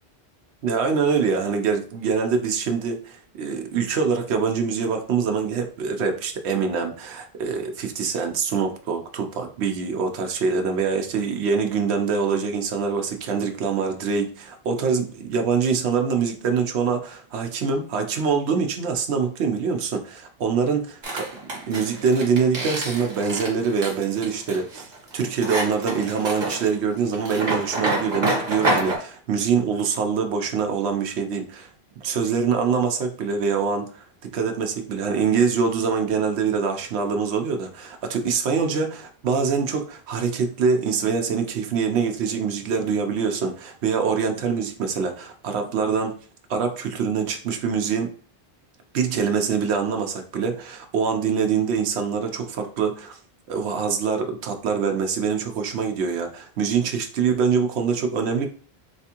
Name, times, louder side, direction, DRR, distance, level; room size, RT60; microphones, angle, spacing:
voice 1, 0.6-21.3 21.7-31.7 32.0-34.0 34.3-46.1 46.5-48.1 48.9-53.2 53.5-58.5, right 5 dB, 85° right, 0.9 m, -24 dB
sound 1, 21.0-29.0, right 2 dB, 45° right, 1.2 m, -28 dB
3.4 x 3.2 x 2.8 m
omnidirectional pair, 1.1 m